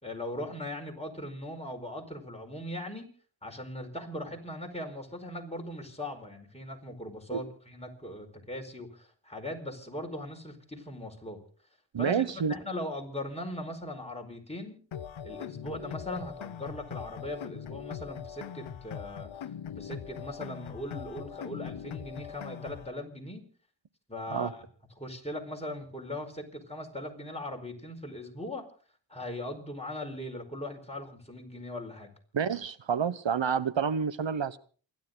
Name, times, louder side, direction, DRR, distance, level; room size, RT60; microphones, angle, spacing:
voice 1, 0.0-3.1 3.4-11.4 12.0-12.2 12.5-14.8 15.2-23.4 24.1-24.6 25.0-28.6 29.1-32.1, left 1 dB, 15° left, 2 dB, 4.8 m, -39 dB
voice 2, 11.9-12.5 24.3-24.5 32.3-34.6, right 7 dB, 80° right, 15 dB, 1.1 m, -29 dB
sound 1, 14.9-22.9, left 9 dB, 85° left, 0.7 m, -41 dB
28.5 x 11.5 x 3.9 m, 0.40 s
cardioid pair, 55°, 45 cm